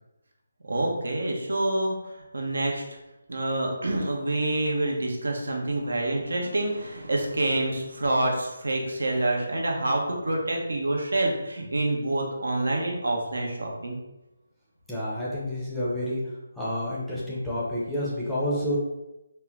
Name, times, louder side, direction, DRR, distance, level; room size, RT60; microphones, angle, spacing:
voice 1, 0.6-2.0 2.3-2.9 3.3-14.0, right 1 dB, 90° right, 0 dB, 0.9 m, -27 dB
voice 2, 14.9-16.2 16.6-18.8, left 1 dB, ahead, -9 dB, 0.6 m, -29 dB
4.4 x 2.0 x 3.5 m, 0.95 s
hypercardioid pair, 170°, 0 cm